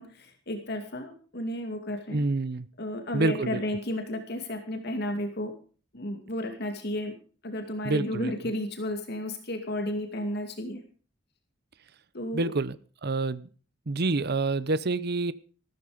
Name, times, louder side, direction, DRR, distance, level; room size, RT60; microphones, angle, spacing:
voice 1, 0.0-2.3 2.8-5.5 5.9-7.1 7.4-10.8 12.1-12.5, left 1 dB, 60° left, 5 dB, 2.5 m, -33 dB
voice 2, 2.1-2.7 3.1-3.6 7.8-8.3 12.3-12.8 13.0-13.5 13.9-15.3, right 3 dB, 55° right, 17 dB, 0.8 m, -27 dB
15.0 x 13.5 x 5.1 m, 0.39 s
head